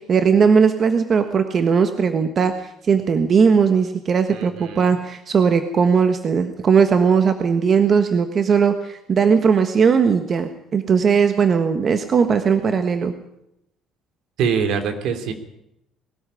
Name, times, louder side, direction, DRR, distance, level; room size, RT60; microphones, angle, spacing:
voice 1, 0.0-13.1, right 6 dB, 40° right, 8 dB, 1.4 m, -18 dB
voice 2, 4.3-4.9 14.4-15.3, right 6 dB, 70° right, 8 dB, 3.2 m, -24 dB
21.0 x 13.0 x 9.9 m, 0.81 s
cardioid pair, 130°, 0 cm